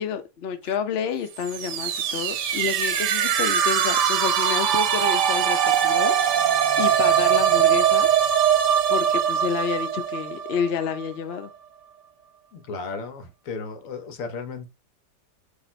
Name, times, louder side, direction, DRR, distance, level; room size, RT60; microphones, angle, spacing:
voice 1, 0.0-6.1 6.8-8.1 8.9-11.5, left 7 dB, 85° left, 0.5 m, -29 dB
sound 1, 1.4-11.1, right 9 dB, 80° right, 1.2 m, -22 dB
voice 2, 12.5-14.7, left 4 dB, 60° left, 1.0 m, -34 dB
4.1 x 2.9 x 4.3 m
omnidirectional pair, 1.9 m